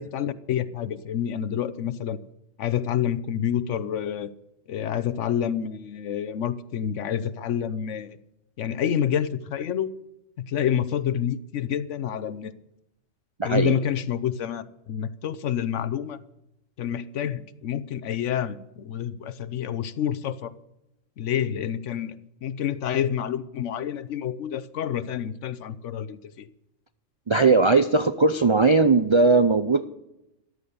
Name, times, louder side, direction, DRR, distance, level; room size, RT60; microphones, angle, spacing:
voice 1, 0.0-2.2 2.6-4.3 4.7-8.2 8.6-9.9 10.4-12.5 13.4-16.2 16.8-20.5 21.2-22.2 22.4-26.5, left 9 dB, 75° left, 15 dB, 1.1 m, -28 dB
voice 2, 13.4-13.8 27.3-29.9, right 3 dB, 45° right, 9 dB, 0.3 m, -19 dB
14.0 x 11.5 x 6.8 m, 0.86 s
omnidirectional pair, 1.3 m